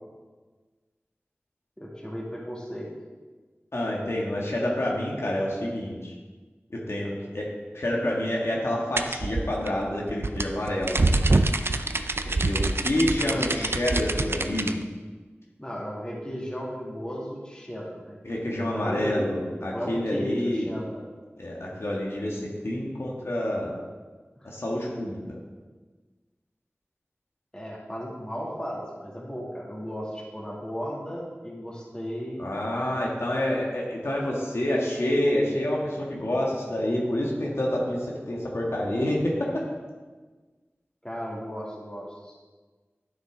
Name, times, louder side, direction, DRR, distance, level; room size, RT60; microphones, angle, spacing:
voice 1, 1.8-2.9 4.4-4.5 13.1-13.5 15.6-18.2 18.5-19.4 19.7-21.0 24.4-24.5 27.5-32.4 41.0-42.3, equal, 20° left, -4 dB, 2.4 m, -35 dB
voice 2, 3.7-6.1 6.7-7.5 7.7-11.0 12.2-14.8 18.2-20.7 21.4-23.8 24.4-25.4 32.4-39.7, left 1 dB, 70° left, -3 dB, 1.5 m, -28 dB
sound 1, 9.0-14.7, right 2 dB, 60° right, 0.5 m, -25 dB
11.0 x 6.5 x 3.8 m, 1.4 s
wide cardioid pair, 45°, 5 cm